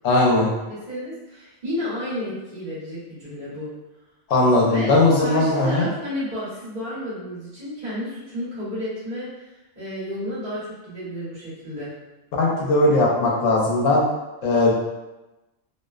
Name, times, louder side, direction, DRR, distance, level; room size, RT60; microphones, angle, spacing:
voice 1, 0.0-0.5 4.3-5.9 12.4-14.0 14.4-14.7, left 2 dB, 85° left, -3 dB, 1.0 m, -18 dB
voice 2, 0.7-3.7 4.6-4.9 5.2-11.9, left 1 dB, 40° right, -10 dB, 1.1 m, -32 dB
2.7 x 2.1 x 2.3 m, 1.0 s
omnidirectional pair, 1.3 m